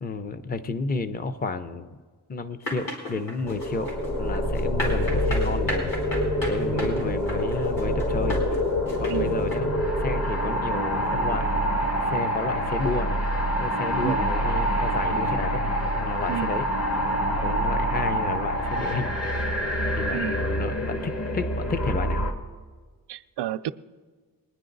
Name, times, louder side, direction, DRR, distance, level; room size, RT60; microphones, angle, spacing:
voice 1, 0.0-2.0 2.3-3.9 4.2-5.9 6.5-8.4 9.0-9.7 10.0-11.5 12.1-13.2 13.6-15.6 15.9-16.7 17.4-19.2 20.0-22.3, left 3 dB, 25° left, 10 dB, 0.6 m, -31 dB
sound 1, 2.6-9.6, left 1 dB, 55° left, 4.3 m, -34 dB
sound 2, 3.4-22.3, equal, 40° left, 1.6 m, -26 dB
voice 2, 6.7-7.2 9.1-9.4 14.0-14.2 16.3-16.5 20.1-20.4 23.1-23.7, right 11 dB, 85° right, 13 dB, 0.5 m, -31 dB
22.5 x 10.0 x 3.9 m, 1.5 s
wide cardioid pair, 140°, 40 cm